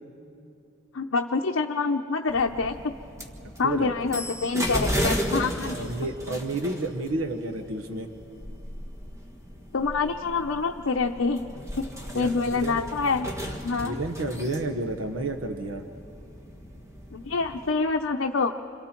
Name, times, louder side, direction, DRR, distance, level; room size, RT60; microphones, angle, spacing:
voice 1, 0.9-2.9 3.6-5.8 9.7-11.5 11.8-13.3 13.6-14.0 17.1-18.5, left 4 dB, 75° left, 2 dB, 0.7 m, -26 dB
sound 1, 2.3-17.7, equal, 15° right, 1.8 m, -35 dB
voice 2, 5.7-8.1 12.1-12.8 13.8-15.8, right 2 dB, 85° right, 6 dB, 1.3 m, -31 dB
27.5 x 26.5 x 4.5 m, 2.8 s
head